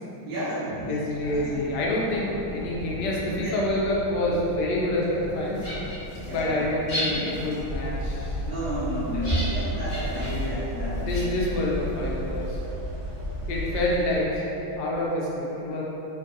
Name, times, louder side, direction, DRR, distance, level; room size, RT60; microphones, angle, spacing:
voice 1, 0.2-1.5 2.8-3.0 3.3-3.6 6.2-6.6 7.0-7.3 8.4-11.3, right 1 dB, 70° right, -13 dB, 1.6 m, -31 dB
voice 2, 0.9-5.6 6.3-8.4 9.1-9.3 10.3-10.5 11.0-12.6 13.5-15.8, left 1 dB, 70° left, -4 dB, 1.1 m, -27 dB
sound 1, 1.1-14.2, equal, 25° right, 1.2 m, -41 dB
sound 2, 5.3-12.7, equal, 40° left, 0.9 m, -37 dB
sound 3, 7.6-14.0, equal, 50° right, 1.3 m, -32 dB
4.5 x 2.3 x 2.6 m, 3.0 s
omnidirectional pair, 2.2 m